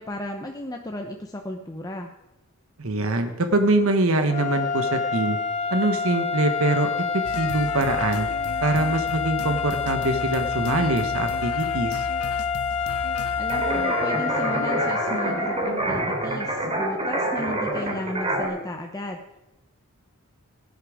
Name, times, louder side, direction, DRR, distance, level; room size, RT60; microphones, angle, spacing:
voice 1, 0.0-2.1 13.3-19.2, left 1 dB, 15° left, 3 dB, 0.8 m, -34 dB
voice 2, 2.8-5.4 5.7-6.9 7.4-8.3 8.6-12.1, right 2 dB, 70° right, 7 dB, 1.2 m, -23 dB
sound 1, 4.3-15.8, left 5 dB, 30° left, 2.1 m, -28 dB
sound 2, 7.2-13.8, left 4 dB, 80° left, 0.6 m, -36 dB
sound 3, 13.5-18.5, right 1 dB, 25° right, 3.2 m, -26 dB
18.0 x 10.5 x 5.0 m, 1.0 s
head